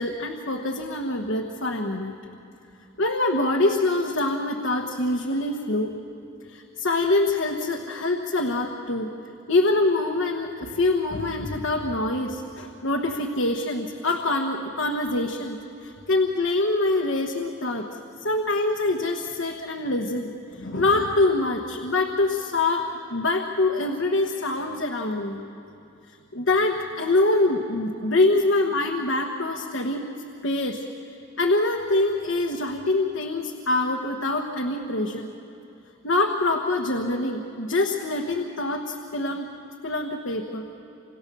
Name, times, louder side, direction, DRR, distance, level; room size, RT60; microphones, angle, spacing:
voice 1, 0.0-2.1 3.0-5.9 6.5-9.1 9.5-17.9 18.2-22.8 23.1-25.4 26.3-30.0 30.4-30.8 31.4-35.3 36.0-39.5 39.8-40.7, left 2 dB, 70° left, 2 dB, 1.3 m, -25 dB
29.0 x 26.5 x 6.9 m, 2.8 s
head